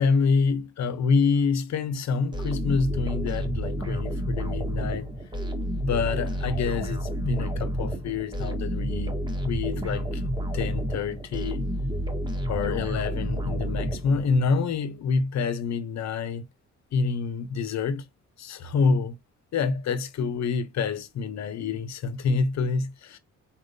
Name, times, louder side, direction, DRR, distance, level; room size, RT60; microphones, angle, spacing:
voice 1, 0.0-5.1 5.8-9.2 9.4-10.2 10.5-11.7 12.5-16.4 16.9-18.0 18.4-19.1 19.5-23.2, left 5 dB, 65° left, 0.9 m, -27 dB
sound 1, 2.3-14.5, right 1 dB, 15° right, 1.3 m, -30 dB
4.4 x 3.6 x 2.7 m
cardioid pair, 90°, 30 cm